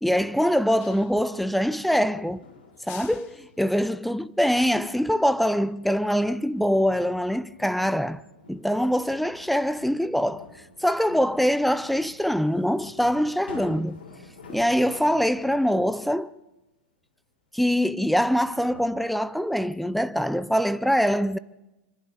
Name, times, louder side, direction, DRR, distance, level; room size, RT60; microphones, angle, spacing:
voice 1, 0.0-2.4 2.9-8.2 8.5-10.5 10.8-14.0 14.5-16.3 17.5-21.4, equal, ahead, 0.7 m, -24 dB
sound 1, 0.8-1.4 2.7-3.6, left 15 dB, 50° left, 1.2 m, -47 dB
sound 2, 1.1-15.8 17.5-17.6 18.3-18.9, left 3 dB, 85° left, 6.6 m, -50 dB
26.0 x 25.5 x 4.2 m
hypercardioid pair, 105°, 5 cm